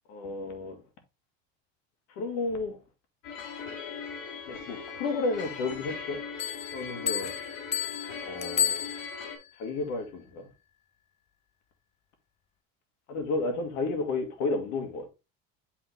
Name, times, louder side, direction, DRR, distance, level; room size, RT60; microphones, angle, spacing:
voice 1, 0.1-0.8 2.1-2.8 4.5-6.3 6.7-7.4 8.2-8.8 9.6-10.5 13.1-15.1, left 3 dB, 65° left, 1.9 m, -32 dB
sound 1, 3.2-9.4, left 5 dB, 85° left, 2.6 m, -40 dB
Bell, 6.4-9.5, left 10 dB, 20° left, 0.4 m, -32 dB
8.9 x 3.7 x 3.4 m
supercardioid pair, 130°, 31 cm